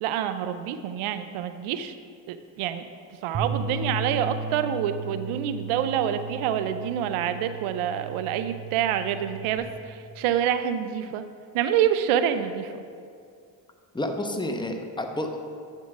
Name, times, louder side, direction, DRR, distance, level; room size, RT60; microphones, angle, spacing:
voice 1, 0.0-1.9 2.3-2.8 3.2-11.3 11.5-12.8, right 9 dB, 90° right, 10 dB, 0.5 m, -27 dB
sound 1, 3.3-9.6, right 4 dB, 45° right, 1.1 m, -35 dB
voice 2, 13.9-15.4, left 1 dB, 10° left, 4 dB, 0.9 m, -30 dB
9.4 x 3.7 x 6.0 m, 2.3 s
supercardioid pair, 50°, 48 cm